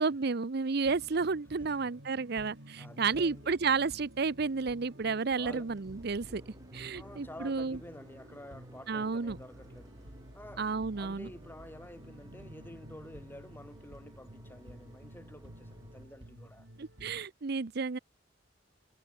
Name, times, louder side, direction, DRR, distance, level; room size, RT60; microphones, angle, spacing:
voice 1, 0.0-6.4 6.7-7.8 8.9-9.4 10.6-11.3 16.8-18.0, right 4 dB, 60° right, 0.7 m, -31 dB
sound 1, 0.8-17.2, right 1 dB, 90° right, 5.1 m, -53 dB
voice 2, 2.8-3.5 5.4-5.7 6.9-10.0 10.3-16.7, left 1 dB, 10° left, 3.7 m, -50 dB
sound 2, 3.1-3.4 3.7-3.8 4.1-4.2 4.5-16.0, equal, 20° right, 4.3 m, -55 dB
head